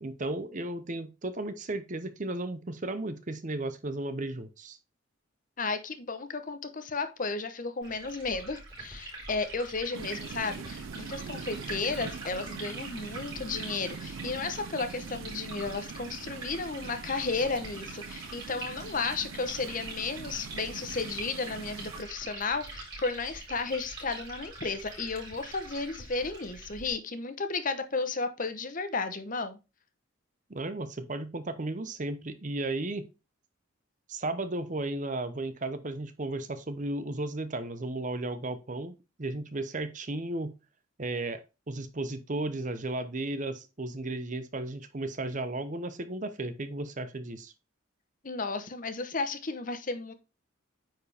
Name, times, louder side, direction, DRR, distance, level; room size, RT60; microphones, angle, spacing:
voice 1, 0.0-4.8 30.5-33.1 34.1-40.5 41.0-41.4 41.7-47.5, right 2 dB, 40° right, 11 dB, 0.8 m, -34 dB
voice 2, 5.6-29.6 48.2-50.1, left 4 dB, 40° left, 9 dB, 0.9 m, -33 dB
Liquid, 7.8-26.9, right 2 dB, 20° right, 4.2 m, -44 dB
sound 1, 9.9-22.0, right 6 dB, 70° right, 0.4 m, -43 dB
9.3 x 4.7 x 3.4 m, 0.28 s
head